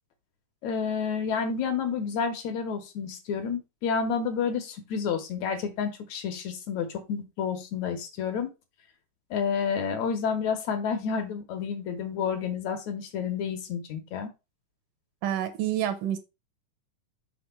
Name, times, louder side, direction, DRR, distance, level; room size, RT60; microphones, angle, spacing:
voice 1, 0.6-8.5 9.3-14.3, left 6 dB, 65° left, 2.1 m, -30 dB
voice 2, 15.2-16.2, right 11 dB, 80° right, 2.5 m, -28 dB
6.1 x 3.4 x 5.7 m
omnidirectional pair, 3.7 m